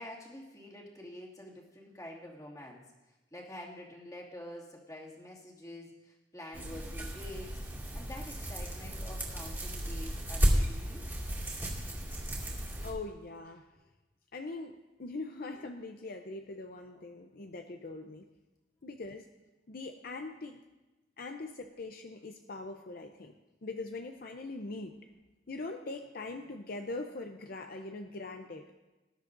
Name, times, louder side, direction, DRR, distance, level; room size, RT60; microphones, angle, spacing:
voice 1, 0.0-2.8 3.3-7.6 7.9-11.0, left 1 dB, 20° left, -3 dB, 2.3 m, -47 dB
sound 1, 6.5-12.9, equal, 15° right, 2.4 m, -33 dB
voice 2, 12.8-13.7 14.3-18.3 18.8-19.3 19.7-20.6 21.2-23.3 23.6-25.0 25.5-28.7, left 3 dB, 55° left, 5 dB, 0.6 m, -42 dB
19.5 x 12.0 x 2.6 m, 1.1 s
head